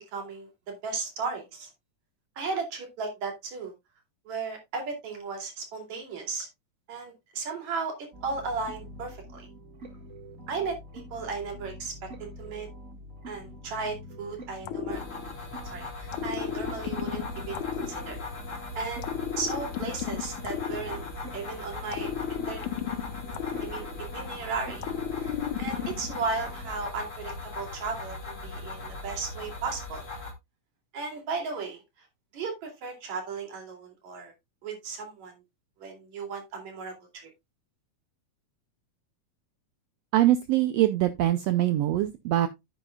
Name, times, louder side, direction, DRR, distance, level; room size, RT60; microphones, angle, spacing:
voice 1, 0.1-1.7 2.4-3.7 4.3-6.5 6.9-9.5 10.5-12.7 13.3-15.0 15.6-18.2 18.8-19.1 19.4-21.0 21.3-22.1 22.5-22.7 23.6-23.9 24.1-24.8 25.2-30.1 30.9-32.1 32.3-34.3 34.6-35.4 35.8-37.3, right 4 dB, 60° right, 3.9 m, -35 dB
sound 1, 8.1-26.9, right 2 dB, 30° right, 1.7 m, -46 dB
sound 2, 14.6-15.6 16.1-18.5 19.0-21.4 21.9-24.3 24.8-26.3, left 10 dB, 75° left, 2.1 m, -34 dB
sound 3, 14.9-30.3, left 3 dB, 30° left, 1.8 m, -39 dB
voice 2, 40.1-42.5, right 14 dB, 85° right, 1.4 m, -23 dB
10.5 x 9.0 x 2.3 m
omnidirectional pair, 3.6 m